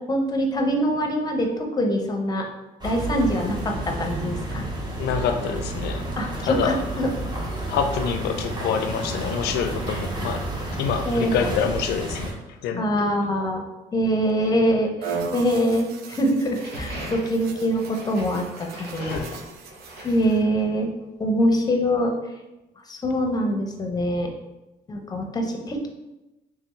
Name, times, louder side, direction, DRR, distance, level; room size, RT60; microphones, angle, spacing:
voice 1, 0.1-2.4 2.8-4.6 6.1-7.1 11.1-11.5 12.8-13.6 13.9-19.2 20.0-20.9 21.2-22.1 22.9-24.3 24.9-25.9, equal, 25° left, 2 dB, 0.7 m, -24 dB
sound 1, 2.8-12.3, right 1 dB, 25° right, 0.9 m, -30 dB
voice 2, 5.0-6.0 6.4-6.8 7.7-10.5 10.8-12.3 12.6-13.0 18.9-19.3, left 7 dB, 75° left, 7 dB, 0.5 m, -26 dB
sound 2, 15.0-20.4, right 5 dB, 70° right, 0.5 m, -37 dB
sound 3, 16.5-20.8, right 1 dB, 90° right, 1.3 m, -39 dB
3.4 x 3.3 x 3.1 m, 0.99 s
cardioid pair, 110°, 17 cm